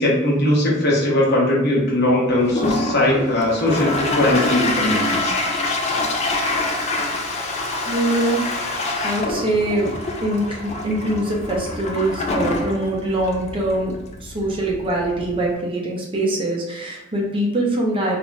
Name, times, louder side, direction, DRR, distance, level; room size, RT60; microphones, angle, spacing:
voice 1, 0.0-5.4, left 1 dB, 55° left, -3 dB, 0.8 m, -19 dB
Toilet flush, 2.4-15.5, left 2 dB, 35° left, 0.3 m, -26 dB
voice 2, 7.8-9.9 10.2-18.2, right 1 dB, 25° right, -2 dB, 0.5 m, -23 dB
2.4 x 2.1 x 3.2 m, 0.96 s
head